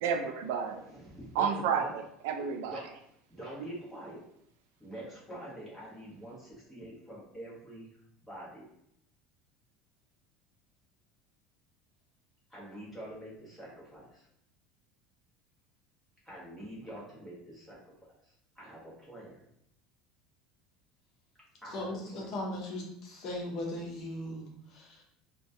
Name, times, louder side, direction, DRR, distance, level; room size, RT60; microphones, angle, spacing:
voice 1, 0.0-0.8 1.4-2.8, right 7 dB, 85° right, 5 dB, 0.4 m, -31 dB
voice 2, 0.7-1.9 2.6-2.8 3.3-4.2 4.8-7.9 8.2-8.6 12.5-14.3 16.2-17.8 18.2-19.4 21.6-22.3, right 1 dB, ahead, -7 dB, 1.1 m, -46 dB
voice 3, 21.7-25.0, left 1 dB, 40° left, -1 dB, 0.7 m, -38 dB
3.9 x 2.2 x 2.7 m, 0.75 s
cardioid pair, 165°, 0 cm